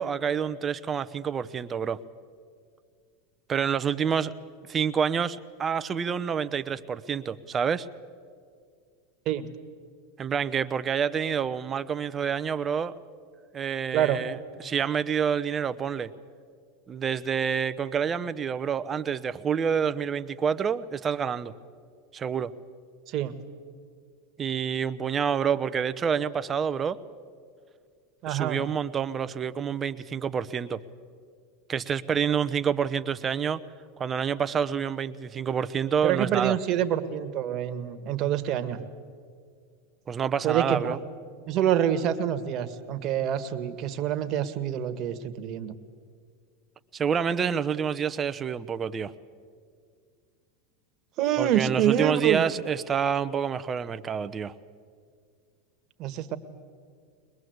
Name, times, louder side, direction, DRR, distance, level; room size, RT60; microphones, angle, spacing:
voice 1, 0.0-2.0 3.5-4.3 4.7-7.9 10.2-13.0 13.5-16.1 16.9-21.5 22.1-22.5 24.4-27.0 28.3-30.8 31.7-33.6 34.0-36.5 40.1-41.0 46.9-49.1 51.4-54.5, right 7 dB, 25° right, 13 dB, 0.8 m, -28 dB
voice 2, 28.2-28.6 36.0-38.8 40.4-41.0 41.5-45.7 51.2-52.4 56.0-56.4, right 10 dB, 45° right, 10 dB, 1.6 m, -26 dB
22.0 x 21.5 x 8.0 m, 2.1 s
hypercardioid pair, 110°, 0 cm